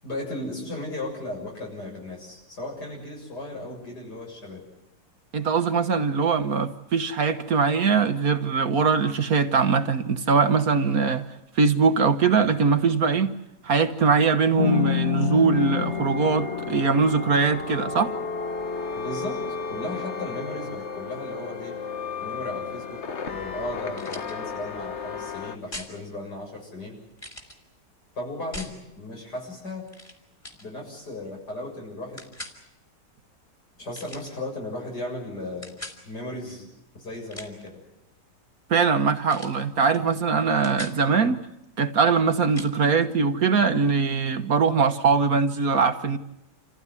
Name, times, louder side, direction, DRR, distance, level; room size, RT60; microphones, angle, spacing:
voice 1, 0.0-4.6 18.9-19.4 19.7-21.7 22.2-23.0 23.3-27.0 28.1-29.9 30.6-32.2 33.8-35.8 36.0-36.7 37.0-37.8, left 1 dB, 70° left, 0 dB, 7.9 m, -35 dB
voice 2, 5.3-11.2 11.5-13.3 13.6-18.1 38.7-41.4 41.8-46.2, right 5 dB, 60° right, 8 dB, 1.5 m, -22 dB
sound 1, 14.6-25.6, left 7 dB, 45° left, 1.3 m, -31 dB
sound 2, 24.0-24.3 25.7-25.9 27.2-27.6 28.5-28.8 29.9-30.1 30.4-30.6 32.2-32.6 33.9-34.3 35.6-36.0 37.1-37.7 39.3-39.6 39.9-40.1 40.4-41.0 42.5-42.7, left 1 dB, 15° left, 3.2 m, -40 dB
28.0 x 15.0 x 9.7 m, 0.90 s
omnidirectional pair, 1.9 m